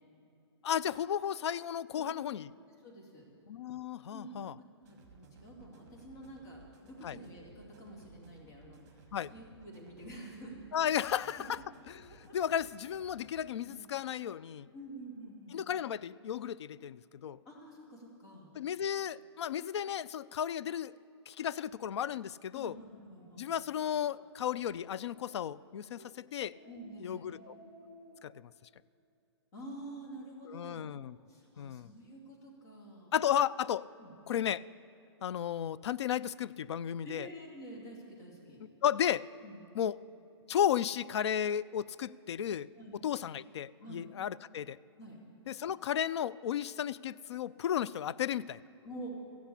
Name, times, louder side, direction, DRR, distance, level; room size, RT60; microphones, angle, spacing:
voice 1, 0.6-2.5 3.5-4.5 7.0-7.2 9.1-9.3 10.7-11.6 11.9-14.7 15.5-17.4 18.6-20.9 21.3-22.8 23.4-26.6 27.0-27.6 28.2-28.5 30.5-31.2 31.6-31.9 33.1-33.9 34.3-34.6 35.2-37.3 38.8-39.3 39.7-40.0 40.5-42.7 43.0-44.8 45.5-48.6, left 9 dB, 75° left, 20 dB, 0.4 m, -34 dB
voice 2, 1.9-2.2 2.6-3.2 4.1-4.4 4.8-10.6 10.8-11.2 12.1-12.4 13.5-13.8 14.7-15.6 17.4-18.5 22.5-23.5 26.6-27.3 29.5-30.9 31.3-33.1 34.0-34.1 37.0-38.6 39.4-39.6 42.7-43.0 43.8-44.1 45.0-45.2 48.8-49.1, right 1 dB, 35° left, -4 dB, 2.6 m, -49 dB
sound 1, 4.8-13.5, right 4 dB, 40° right, 2.0 m, -59 dB
Speech, 23.2-23.3 23.8-24.1 24.4-24.5 24.9-25.5 25.9-26.1 26.5-26.9 27.2-28.2, equal, 55° left, 3.0 m, -57 dB
14.0 x 8.2 x 8.5 m, 2.8 s
hypercardioid pair, 175°, 15 cm